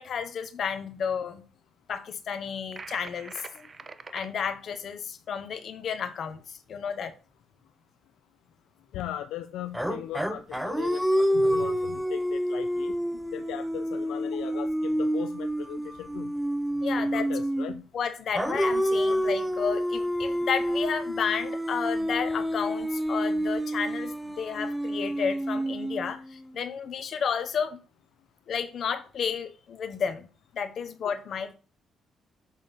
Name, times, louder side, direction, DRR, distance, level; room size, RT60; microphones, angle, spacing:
voice 1, 0.0-1.4 1.9-3.7 4.1-7.1 16.8-17.2 17.9-27.8 28.5-30.3 30.5-31.5, left 7 dB, 60° left, 1.1 m, -32 dB
sound 1, 2.7-4.3, right 4 dB, 35° right, 0.6 m, -43 dB
voice 2, 8.9-12.9 13.3-16.3 17.0-17.8 18.9-19.2, left 12 dB, 90° left, 0.4 m, -38 dB
sound 2, 9.7-17.8 18.4-26.4, equal, ahead, 0.8 m, -28 dB
7.4 x 3.8 x 5.7 m
cardioid pair, 90°, 0 cm